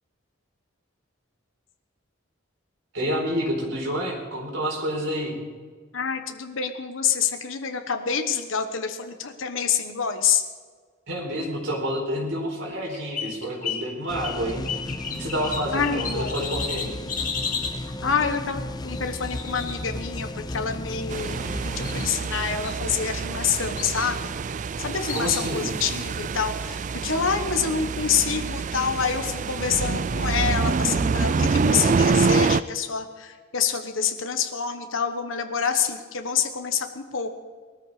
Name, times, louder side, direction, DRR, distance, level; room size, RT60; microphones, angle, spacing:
voice 1, 2.9-5.3 11.1-14.8 15.1-16.9 25.1-25.7, equal, 75° right, -1 dB, 4.2 m, -29 dB
voice 2, 5.9-10.4 15.7-16.4 18.0-24.3 24.8-37.4, left 6 dB, 75° left, 6 dB, 1.2 m, -27 dB
sound 1, 12.7-13.9 14.2-17.8 18.9-20.4 21.2-21.5 21.8-22.4 22.6-23.4 23.8-24.1 25.1-25.6, left 6 dB, 40° left, 2.7 m, -33 dB
sound 2, 14.1-22.1, left 1 dB, 20° left, 0.5 m, -34 dB
sound 3, 21.1-32.6, right 4 dB, 40° right, 0.3 m, -26 dB
20.0 x 13.5 x 4.9 m, 1.5 s
head